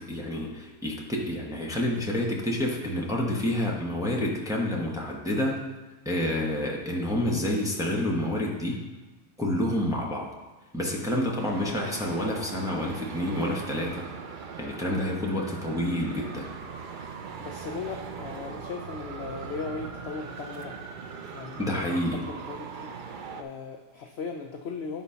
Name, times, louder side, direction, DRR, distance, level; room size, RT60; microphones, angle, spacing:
voice 1, 0.0-5.6 6.0-8.8 9.4-10.3 10.7-14.1 14.6-16.5 21.6-22.2, left 1 dB, 5° right, -2 dB, 0.9 m, -28 dB
Traffic noise roadway noise, 11.4-23.4, right 5 dB, 90° right, 0.4 m, -40 dB
voice 2, 11.5-12.2 17.4-20.8 21.3-22.9 23.4-25.0, left 4 dB, 65° left, 3 dB, 0.6 m, -38 dB
10.5 x 4.0 x 5.7 m, 1.2 s
omnidirectional pair, 1.7 m